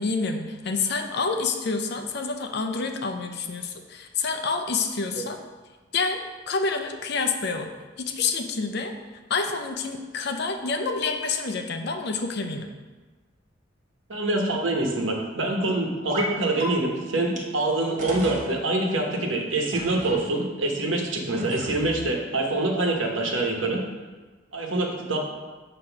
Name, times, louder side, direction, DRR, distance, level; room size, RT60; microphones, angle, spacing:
voice 1, 0.0-5.4 5.9-7.7 8.0-8.9 9.3-12.7, left 4 dB, 60° left, 6 dB, 0.6 m, -28 dB
voice 2, 14.1-23.8 24.5-25.2, right 2 dB, 80° right, 1 dB, 1.2 m, -25 dB
sound 1, 16.1-16.3 16.6-16.7 17.4-17.5 18.0-18.5 19.7-20.2 21.3-22.0, equal, 40° right, 1.2 m, -34 dB
7.9 x 3.0 x 5.9 m, 1.3 s
head